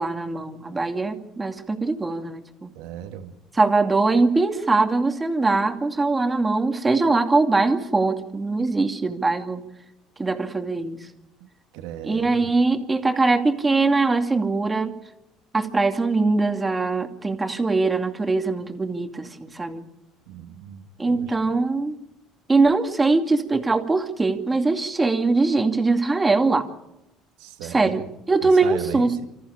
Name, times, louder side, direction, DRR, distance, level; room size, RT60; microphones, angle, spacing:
voice 1, 0.0-2.7 3.5-9.6 10.2-11.0 12.0-14.9 15.5-19.9 21.0-22.0 22.5-26.7 27.6-28.0 28.3-29.1, right 3 dB, 20° right, 5 dB, 2.5 m, -22 dB
voice 2, 2.7-3.3 11.4-12.5 20.3-21.5 27.4-28.1 28.4-29.2, right 10 dB, 85° right, 6 dB, 2.1 m, -37 dB
26.0 x 14.0 x 8.8 m, 0.89 s
supercardioid pair, 80°, 0 cm